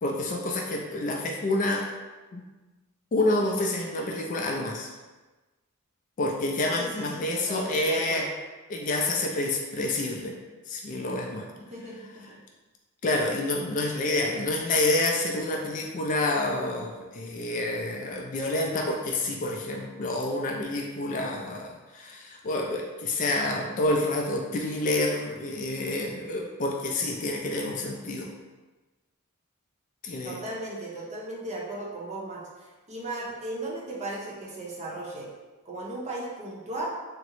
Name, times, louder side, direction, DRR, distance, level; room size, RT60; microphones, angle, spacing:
voice 1, 0.0-1.9 2.3-2.4 3.1-4.9 6.2-8.3 8.7-10.4 10.7-11.5 13.0-28.3 30.0-30.4, left 2 dB, 35° left, 0 dB, 0.3 m, -28 dB
voice 2, 6.7-8.3 11.7-12.4 30.2-35.3 35.6-36.9, right 2 dB, 30° right, -4 dB, 0.6 m, -36 dB
3.6 x 2.0 x 3.0 m, 1.2 s
head